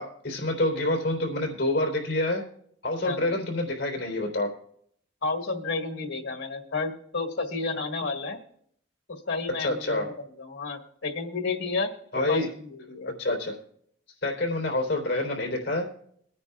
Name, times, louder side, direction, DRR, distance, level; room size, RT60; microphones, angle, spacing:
voice 1, 0.0-2.4 2.8-4.5 9.6-10.1 12.1-12.5 13.2-13.6 14.2-15.9, left 2 dB, 65° left, 2 dB, 3.6 m, -27 dB
voice 2, 3.0-3.3 5.2-8.4 9.1-10.0 10.4-11.9 12.3-13.1, left 3 dB, 80° left, 4 dB, 1.7 m, -31 dB
22.0 x 9.6 x 2.4 m, 0.65 s
head